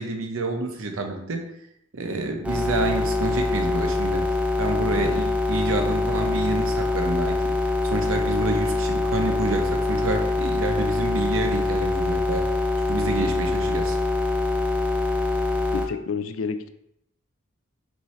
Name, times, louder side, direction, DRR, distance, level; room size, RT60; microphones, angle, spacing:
voice 1, 0.0-1.4 1.9-4.2 4.6-7.5 7.8-12.5 12.9-14.0, right 2 dB, 90° right, 3 dB, 0.8 m, -28 dB
sound 1, 2.4-15.9, left 2 dB, 5° right, 0.4 m, -24 dB
voice 2, 4.9-5.2 15.7-16.7, left 5 dB, 85° left, 10 dB, 0.4 m, -30 dB
6.0 x 2.7 x 3.2 m, 0.79 s
head